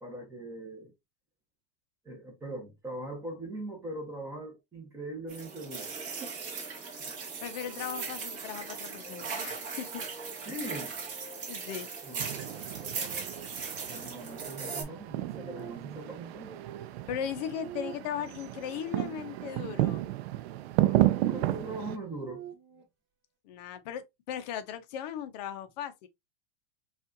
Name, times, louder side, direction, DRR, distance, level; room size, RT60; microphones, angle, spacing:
voice 1, 0.0-0.9 2.0-6.0 10.5-10.9 12.1-13.5 13.9-16.5 20.9-22.4, right 1 dB, 10° right, 0.8 m, -41 dB
sound 1, 5.3-14.8, right 5 dB, 25° right, 1.1 m, -39 dB
voice 2, 7.4-10.0 11.5-11.9 17.1-20.0 23.4-26.1, left 9 dB, 45° left, 0.6 m, -37 dB
sound 2, 7.6-19.5 20.6-22.8, right 8 dB, 45° right, 1.4 m, -50 dB
sound 3, 12.2-22.0, right 14 dB, 90° right, 0.5 m, -32 dB
5.3 x 2.4 x 2.5 m
supercardioid pair, 165°, 30 cm